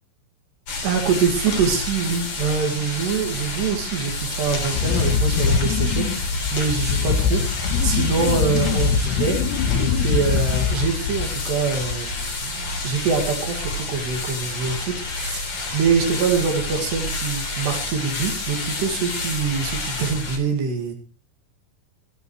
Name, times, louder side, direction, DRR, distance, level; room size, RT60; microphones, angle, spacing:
sound 1, 0.7-20.4, left 2 dB, 30° left, 3.5 m, -29 dB
voice 1, 0.8-9.4 9.7-20.9, right 5 dB, 60° right, 3 dB, 4.0 m, -24 dB
Wind, 4.7-11.6 11.9-12.4, left 6 dB, 75° left, 2.5 m, -23 dB
28.5 x 12.0 x 3.2 m, 0.34 s
omnidirectional pair, 6.0 m